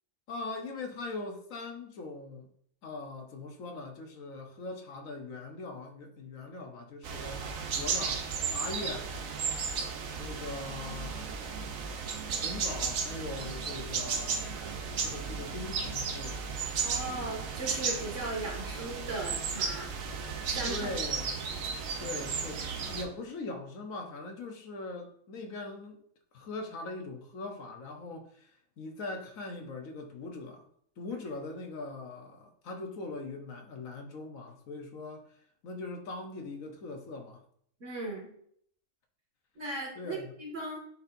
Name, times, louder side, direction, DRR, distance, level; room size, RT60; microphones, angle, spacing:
voice 1, 0.3-2.5 2.8-8.2 8.5-9.1 10.1-11.2 12.4-14.5 15.0-16.5 20.7-21.3 22.0-26.0 26.3-28.5 28.8-30.6 31.0-35.2 35.6-37.4 40.0-40.3, left 3 dB, 90° left, 1.4 m, -41 dB
sound 1, 7.0-23.0, right 5 dB, 85° right, 1.2 m, -34 dB
voice 2, 16.8-19.9 20.5-20.9 37.8-38.3 39.6-40.8, right 2 dB, 65° right, 2.4 m, -37 dB
10.0 x 4.2 x 2.7 m
omnidirectional pair, 1.4 m